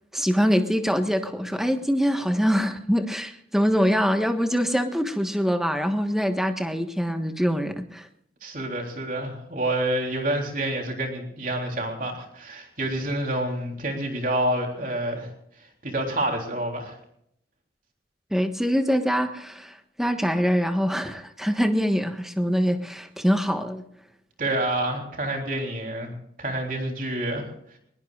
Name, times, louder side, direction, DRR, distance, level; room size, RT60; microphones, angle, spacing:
voice 1, 0.1-8.1 18.3-23.8, equal, ahead, 6 dB, 1.3 m, -24 dB
voice 2, 8.4-15.3 15.8-17.0 24.4-27.5, right 1 dB, 45° right, 2 dB, 3.5 m, -28 dB
23.0 x 21.5 x 2.5 m, 0.73 s
head